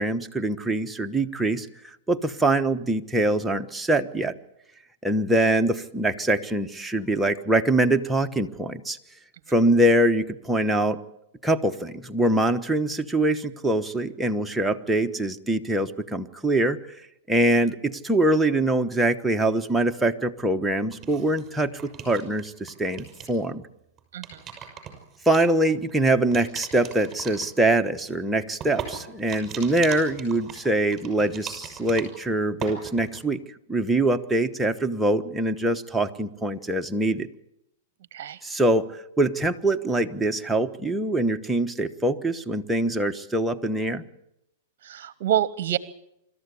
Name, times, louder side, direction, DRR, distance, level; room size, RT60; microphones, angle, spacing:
voice 1, 0.0-1.7 2.1-4.3 5.0-9.0 9.5-11.0 11.4-16.8 17.3-23.6 25.2-33.4 33.7-37.3 38.4-38.9 39.2-44.0, right 1 dB, 5° right, 4 dB, 1.1 m, -23 dB
sound 1, 20.9-22.4 22.7-23.4 24.0-25.9 26.3-32.3 32.6-33.2, right 7 dB, 25° right, 6.0 m, -39 dB
voice 2, 44.8-45.8, right 11 dB, 60° right, 17 dB, 0.8 m, -27 dB
26.0 x 13.5 x 8.3 m, 0.83 s
hypercardioid pair, 120°, 0 cm